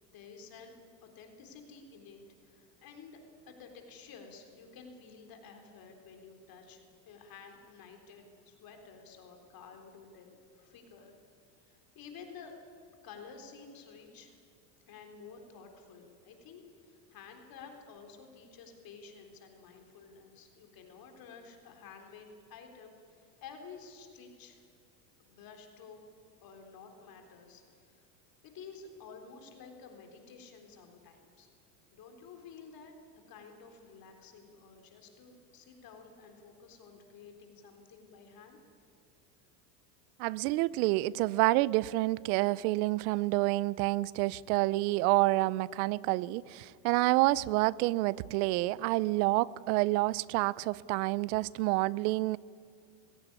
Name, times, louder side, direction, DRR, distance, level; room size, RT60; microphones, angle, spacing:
voice 1, 0.1-0.7 1.0-3.2 3.5-11.1 11.6-12.5 13.0-14.3 14.9-24.6 25.2-26.0 26.4-28.1 28.4-31.5 31.9-38.6, left 5 dB, 45° left, 4 dB, 3.9 m, -52 dB
voice 2, 40.2-52.4, right 20 dB, 60° right, 22 dB, 0.7 m, -28 dB
21.0 x 16.5 x 9.7 m, 2.2 s
supercardioid pair, 110°, 49 cm